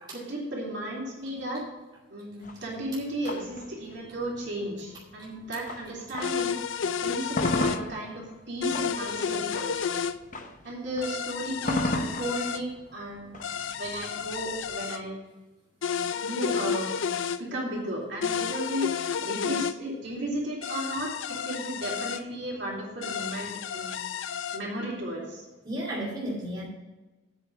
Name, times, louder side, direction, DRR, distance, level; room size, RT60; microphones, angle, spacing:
voice 1, 0.1-1.6 2.1-6.6 7.0-10.0 10.6-13.5 13.8-15.2 16.2-17.0 17.4-18.9 19.2-23.9 24.5-25.4, right 1 dB, 60° right, -4 dB, 3.4 m, -34 dB
sound 1, 2.4-6.6 7.0-14.9, left 1 dB, 40° left, 0.9 m, -35 dB
sound 2, 6.2-7.8 8.6-10.2 11.0-12.6 13.4-15.0 15.8-17.4 18.2-19.7 20.6-22.2 23.0-24.6, left 7 dB, 75° left, 0.5 m, -31 dB
voice 2, 25.6-26.7, right 1 dB, 20° right, -6 dB, 2.5 m, -33 dB
8.2 x 6.6 x 7.4 m, 1.1 s
head